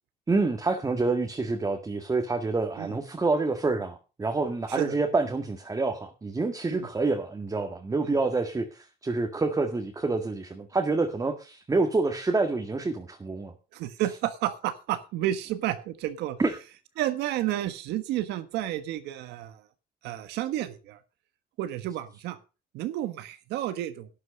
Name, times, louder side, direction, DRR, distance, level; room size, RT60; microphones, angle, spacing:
voice 1, 0.3-13.5 16.4-16.6, right 3 dB, 20° right, 1.9 m, -27 dB
voice 2, 13.7-16.4 17.0-19.6 20.0-21.0 21.6-22.4 22.7-24.1, right 13 dB, 90° right, 1.5 m, -31 dB
12.0 x 9.8 x 5.4 m
cardioid pair, 110°, 17 cm